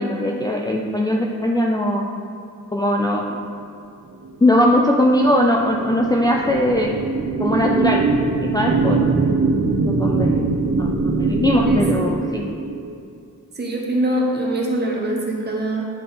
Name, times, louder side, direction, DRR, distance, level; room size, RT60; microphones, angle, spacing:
voice 1, 0.0-2.1 2.7-3.4 4.4-6.9 7.4-8.0 8.4-9.3 9.8-10.4 10.8-12.4, left 1 dB, 15° left, -1 dB, 0.4 m, -20 dB
sound 1, 4.2-13.0, right 3 dB, 60° right, 0.7 m, -22 dB
voice 2, 11.7-12.3 13.6-15.9, right 1 dB, 30° right, -1 dB, 1.1 m, -23 dB
10.5 x 4.2 x 3.7 m, 2.4 s
wide cardioid pair, 165°, 32 cm